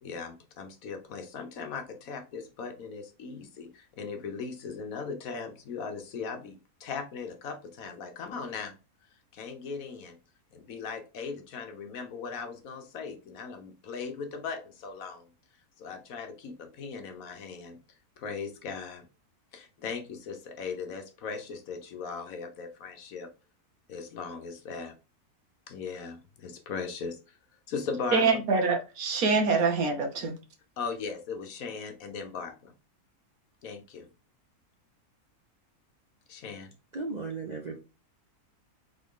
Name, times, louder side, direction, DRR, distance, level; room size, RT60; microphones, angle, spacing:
voice 1, 0.0-8.8 9.3-10.2 10.5-15.3 15.8-17.8 18.2-19.0 19.5-23.3 23.9-24.9 25.7-27.4 27.7-28.2 30.8-32.7 33.6-34.1 36.3-36.7, left 5 dB, 70° left, 1.3 m, -38 dB
voice 2, 28.1-30.3, right 4 dB, 75° right, 1.5 m, -25 dB
voice 3, 36.9-37.8, right 3 dB, 55° right, 0.4 m, -35 dB
3.8 x 3.8 x 3.7 m
omnidirectional pair, 1.6 m